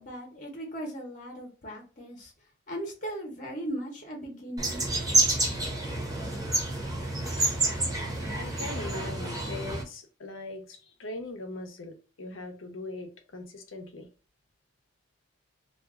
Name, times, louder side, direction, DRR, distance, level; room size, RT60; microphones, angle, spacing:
voice 1, 0.0-2.3 2.7-4.8, right 1 dB, 40° left, 0 dB, 0.9 m, -38 dB
sound 1, 4.6-9.8, right 2 dB, 20° right, 0.8 m, -28 dB
voice 2, 8.4-14.1, left 2 dB, 90° left, 5 dB, 0.7 m, -40 dB
2.5 x 2.3 x 3.4 m, 0.36 s
head